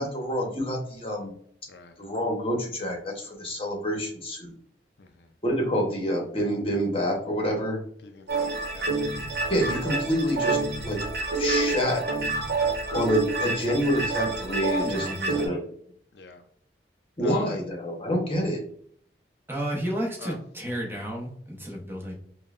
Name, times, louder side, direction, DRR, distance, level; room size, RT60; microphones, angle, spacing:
voice 1, 0.0-1.3 2.0-4.5 5.4-7.8 9.5-10.6 10.8-11.0 11.3-12.0 12.9-15.6 17.2-18.6, equal, 30° left, 0 dB, 0.9 m, -27 dB
voice 2, 1.7-2.0 5.0-5.3 8.0-8.9 16.1-16.4 17.2-17.6 20.2-20.4, left 3 dB, 70° left, 6 dB, 0.4 m, -44 dB
sound 1, 8.3-15.5, right 3 dB, 60° right, 1.0 m, -28 dB
voice 3, 14.8-15.5 19.5-22.2, equal, 10° right, -2 dB, 0.8 m, -32 dB
5.3 x 2.2 x 2.4 m, 0.63 s
head